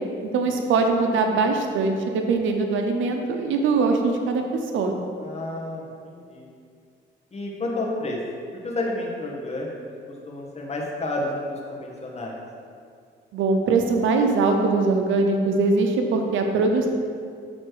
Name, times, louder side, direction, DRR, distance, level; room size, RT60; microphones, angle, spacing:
voice 1, 0.2-4.4 4.7-4.9 13.3-16.9, right 3 dB, 75° right, 4 dB, 0.8 m, -22 dB
voice 2, 5.2-6.5 7.3-8.2 8.6-9.7 10.3-12.4, left 2 dB, 35° left, -2 dB, 1.3 m, -30 dB
6.4 x 4.2 x 4.7 m, 2.2 s
cardioid pair, 90°, 20 cm